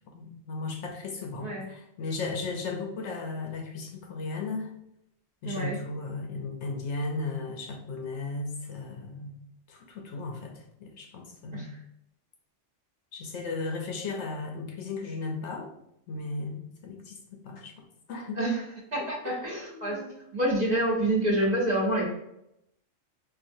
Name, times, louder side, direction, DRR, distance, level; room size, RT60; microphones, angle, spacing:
voice 1, 0.1-4.8 5.4-9.4 9.7-11.8 13.1-15.7 16.1-18.4 19.2-19.4 19.7-20.1, left 3 dB, 70° left, 2 dB, 0.8 m, -36 dB
voice 2, 5.4-5.8 11.5-11.7 18.3-18.7 18.9-20.0 20.3-22.1, right 1 dB, 35° right, -5 dB, 0.9 m, -27 dB
4.2 x 2.5 x 2.6 m, 0.79 s
omnidirectional pair, 1.3 m